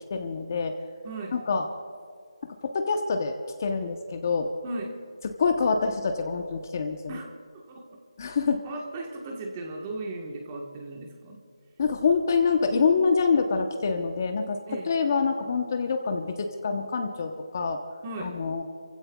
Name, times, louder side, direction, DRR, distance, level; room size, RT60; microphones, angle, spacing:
voice 1, 0.1-0.7 1.3-1.7 2.4-3.3 3.6-4.5 5.4-7.0 8.2-8.6 11.8-14.6 14.8-17.8 18.2-18.6, left 5 dB, 30° left, 5 dB, 0.9 m, -26 dB
voice 2, 1.0-1.4 4.6-5.0 7.1-7.3 7.5-8.0 8.6-11.4 14.7-14.9 18.0-18.4, right 2 dB, 15° right, 1 dB, 1.4 m, -37 dB
30.0 x 15.5 x 2.3 m, 2.2 s
figure-of-eight pair, 170°, 3 cm